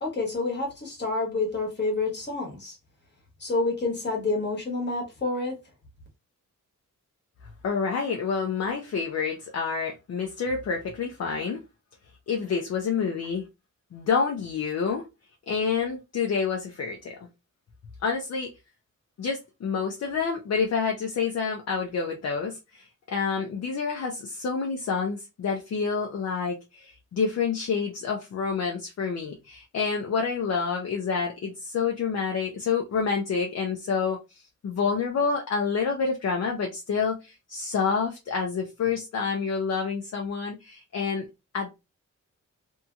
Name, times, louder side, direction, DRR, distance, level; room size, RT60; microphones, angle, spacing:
voice 1, 0.0-2.8 3.4-5.5, left 3 dB, 35° left, 1.2 m, -28 dB
voice 2, 7.6-11.6 12.3-13.4 13.9-15.0 15.5-17.2 18.0-18.5 19.2-41.2 41.5-41.7, left 5 dB, 55° left, 0.6 m, -28 dB
2.8 x 2.7 x 2.3 m
wide cardioid pair, 150°, 32 cm